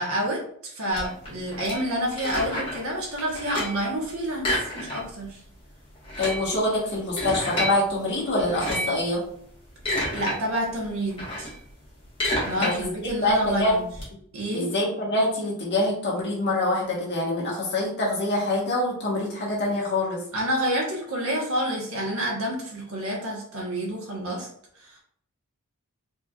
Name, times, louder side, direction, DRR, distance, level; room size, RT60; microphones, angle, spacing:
voice 1, 0.0-5.4 10.1-11.5 12.4-13.9 14.3-14.7 20.3-24.5 24.8-25.0, equal, 75° right, -2 dB, 1.3 m, -29 dB
sound 1, 0.9-2.9 3.2-3.8 4.4-5.3 5.5-5.6 5.9-7.7 8.4-9.0 9.5-10.3 10.7-14.0, left 1 dB, 25° left, 1.5 m, -30 dB
voice 2, 6.2-9.2 12.6-13.8 14.5-20.2, left 1 dB, 50° left, -5 dB, 1.4 m, -25 dB
4.4 x 2.9 x 2.4 m, 0.64 s
head